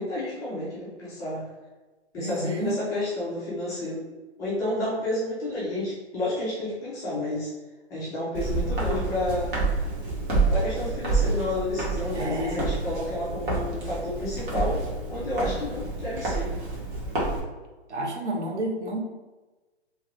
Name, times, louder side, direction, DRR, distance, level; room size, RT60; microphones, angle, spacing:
voice 1, 0.0-1.4 2.1-4.0 4.4-7.5 7.9-9.5 10.5-14.8 15.1-16.5, left 1 dB, 10° left, -8 dB, 0.4 m, -30 dB
voice 2, 2.2-2.7 12.1-12.6 17.9-19.0, right 1 dB, 85° right, 0 dB, 0.9 m, -30 dB
Walk footsteps, 8.3-17.4, right 3 dB, 50° right, 1.3 m, -28 dB
2.8 x 2.4 x 3.2 m, 1.2 s
hypercardioid pair, 140°, 34 cm